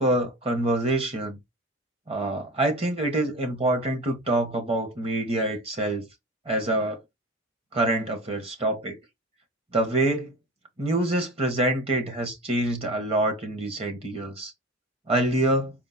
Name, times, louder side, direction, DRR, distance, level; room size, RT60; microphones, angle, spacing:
voice 1, 0.0-1.4 2.1-6.1 6.4-7.0 7.7-9.0 9.7-10.3 10.8-14.5 15.1-15.7, right 1 dB, 35° right, 1.5 m, -26 dB
4.4 x 2.1 x 4.2 m
head